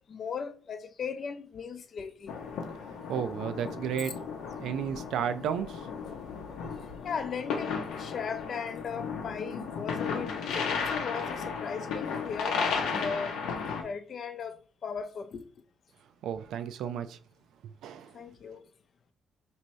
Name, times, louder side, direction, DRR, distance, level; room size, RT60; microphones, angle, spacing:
voice 1, 0.1-2.4 4.0-4.1 7.0-13.3 13.8-14.6 14.8-15.5 18.1-18.6, left 6 dB, 55° left, 0.5 m, -37 dB
sound 1, 2.3-13.8, left 5 dB, 90° left, 0.7 m, -34 dB
voice 2, 3.1-4.1 4.6-5.8 6.6-6.8 16.2-17.2 17.8-18.2, right 8 dB, 80° right, 0.3 m, -33 dB
4.4 x 2.6 x 3.1 m
cardioid pair, 90°, 0 cm